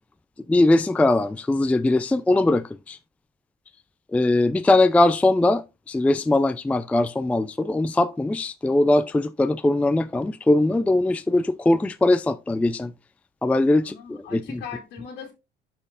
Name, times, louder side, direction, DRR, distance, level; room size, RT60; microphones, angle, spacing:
voice 1, 0.5-3.0 4.1-12.9 13.4-14.6, left 2 dB, 10° left, 0.3 m, -21 dB
voice 2, 13.8-15.3, left 7 dB, 85° left, 1.8 m, -39 dB
12.0 x 4.2 x 2.4 m
cardioid pair, 110°, 17 cm